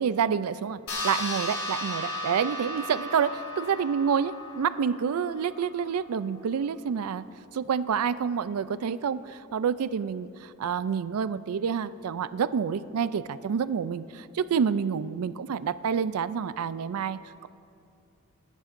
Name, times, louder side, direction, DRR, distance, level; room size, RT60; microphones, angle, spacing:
voice 1, 0.0-7.3 7.5-17.5, right 7 dB, 70° right, 15 dB, 0.4 m, -28 dB
sound 1, 0.9-5.7, left 1 dB, 70° left, 2.6 m, -35 dB
22.0 x 9.9 x 2.6 m, 2.6 s
head